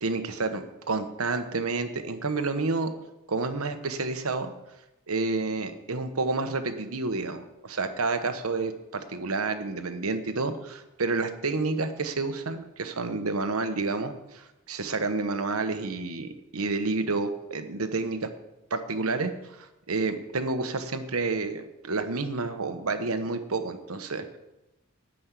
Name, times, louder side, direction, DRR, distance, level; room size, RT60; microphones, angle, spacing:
voice 1, 0.0-2.9 3.3-4.5 5.1-18.3 18.7-24.4, right 3 dB, 85° right, 8 dB, 1.1 m, -29 dB
12.0 x 5.4 x 8.2 m, 0.97 s
head